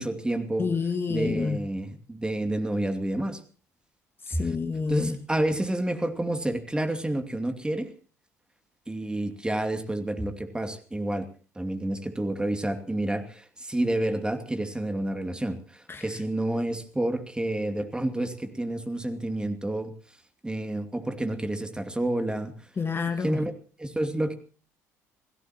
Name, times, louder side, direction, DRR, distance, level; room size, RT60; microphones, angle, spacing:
voice 1, 0.0-0.7 1.1-3.4 4.3-4.6 4.9-7.9 8.9-11.3 11.6-19.9 20.4-22.5 23.2-23.5 23.8-24.3, right 1 dB, 10° right, 2.7 m, -29 dB
voice 2, 0.6-1.6 4.3-5.2 15.9-16.1 22.8-23.4, left 5 dB, 25° left, 2.0 m, -28 dB
28.5 x 17.0 x 3.0 m
figure-of-eight pair, 55°, 8 cm